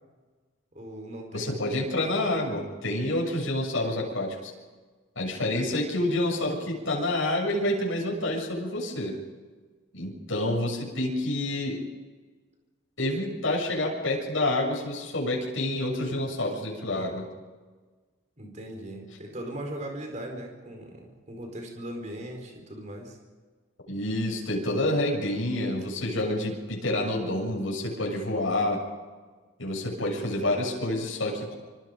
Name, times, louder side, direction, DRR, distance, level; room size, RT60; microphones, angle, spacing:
voice 1, 0.7-1.6 18.4-23.2, right 1 dB, 35° right, 2 dB, 4.8 m, -39 dB
voice 2, 1.3-4.5 5.2-9.2 9.9-11.8 13.0-17.3 23.9-28.8 29.6-31.5, left 1 dB, 75° left, -1 dB, 7.3 m, -28 dB
26.0 x 26.0 x 5.3 m, 1.4 s
head